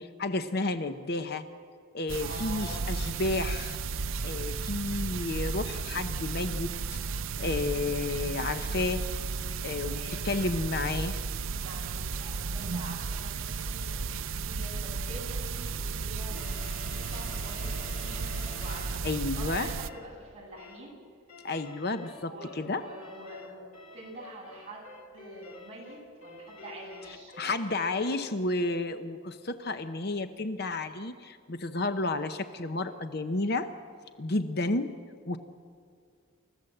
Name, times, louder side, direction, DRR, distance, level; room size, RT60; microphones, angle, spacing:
voice 1, 0.0-1.4 1.9-3.8 4.2-7.0 7.4-9.0 9.6-10.0 10.2-11.2 19.0-19.7 21.4-22.8 27.4-33.7 34.2-34.9 35.3-35.4, left 2 dB, 45° left, 9 dB, 0.8 m, -31 dB
sound 1, 2.1-19.9, right 4 dB, 65° right, 0.6 m, -34 dB
voice 2, 2.2-2.9 9.9-10.3 11.6-16.5 16.9-19.0 19.4-21.0 22.2-23.6 23.9-24.9 25.1-27.4, right 1 dB, 30° right, -4 dB, 7.6 m, -46 dB
sound 2, 16.3-19.1 19.8-20.1 20.6-20.9 21.3-28.4, left 4 dB, 85° left, 2.0 m, -50 dB
28.5 x 15.0 x 7.8 m, 2.2 s
head